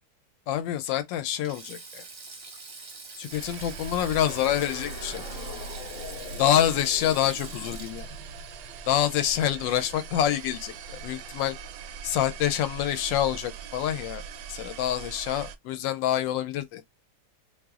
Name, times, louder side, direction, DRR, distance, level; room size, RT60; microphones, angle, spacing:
voice 1, 0.5-2.0 3.2-5.2 6.4-8.1 8.9-10.7 11.0-11.6 12.0-14.2 14.5-16.9, left 11 dB, 80° left, 1.3 m, -26 dB
Sink (filling or washing), 1.3-9.8 10.0-10.3 11.4-11.7, right 3 dB, 45° right, 0.7 m, -45 dB
sound 1, 3.3-15.6, right 6 dB, 75° right, 1.1 m, -41 dB
sound 2, 4.2-9.5, left 8 dB, 65° left, 0.8 m, -43 dB
3.0 x 2.0 x 3.5 m
omnidirectional pair, 2.0 m